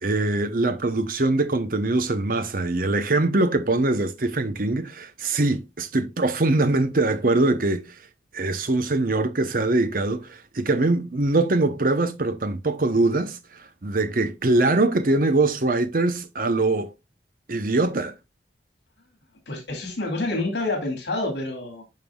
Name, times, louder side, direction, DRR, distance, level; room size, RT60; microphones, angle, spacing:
voice 1, 0.0-7.8 8.3-13.4 13.8-16.9 17.5-18.1, right 2 dB, 50° right, 0.8 m, -22 dB
voice 2, 19.5-21.8, left 2 dB, 75° left, 2.3 m, -28 dB
9.3 x 5.3 x 2.3 m
head